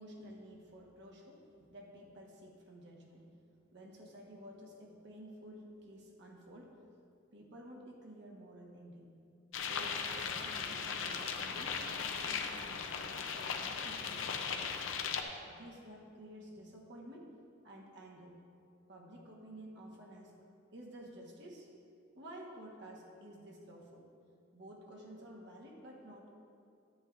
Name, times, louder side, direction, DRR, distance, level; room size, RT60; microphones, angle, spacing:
voice 1, 0.0-1.4 1.7-3.3 3.7-6.8 7.3-9.1 9.7-14.8 15.5-17.3 17.6-18.4 18.9-20.3 20.7-21.7 22.1-24.1 24.5-26.3, right 1 dB, 60° right, -1 dB, 1.3 m, -52 dB
sound 1, 9.5-15.2, left 6 dB, 85° left, 0.6 m, -38 dB
10.0 x 9.3 x 2.5 m, 2.5 s
head